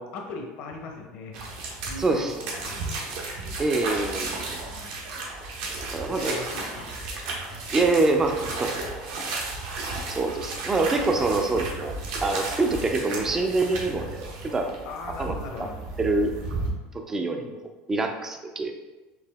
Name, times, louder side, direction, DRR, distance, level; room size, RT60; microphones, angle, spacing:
voice 1, 0.0-1.4 1.8-3.1 4.6-5.0 5.7-7.0 14.9-15.8 17.2-17.6, left 3 dB, 55° left, 2 dB, 0.7 m, -39 dB
sound 1, 1.3-16.7, right 3 dB, 70° right, 1.0 m, -34 dB
voice 2, 2.0-2.3 3.6-4.6 5.9-6.4 7.7-8.7 10.1-11.9 12.2-14.8 15.2-15.3 16.0-16.3 16.9-17.5 17.9-18.7, right 3 dB, 15° right, 4 dB, 0.4 m, -25 dB
4.7 x 2.8 x 3.4 m, 1.2 s
cardioid pair, 155°, 3 cm